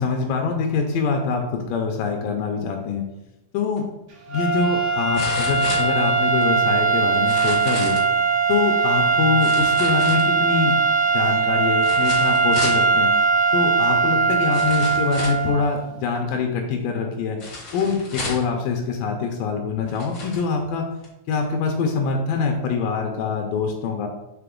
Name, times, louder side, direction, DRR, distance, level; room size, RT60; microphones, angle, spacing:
voice 1, 0.0-3.0 3.5-3.8 4.3-8.0 8.5-13.1 13.5-17.4 17.7-20.9 21.3-24.1, left 5 dB, 80° left, 3 dB, 2.3 m, -24 dB
sound 1, 3.8-3.9 5.1-6.4 7.1-8.1 9.4-10.6 11.8-12.8 13.8-13.9 14.5-15.5 17.4-18.5 19.3-19.4 19.9-20.4 21.0-21.1, left 2 dB, 40° left, 1.0 m, -33 dB
sound 2, 4.3-15.8, right 4 dB, 70° right, 3.5 m, -20 dB
6.8 x 3.8 x 3.7 m, 0.97 s
omnidirectional pair, 3.9 m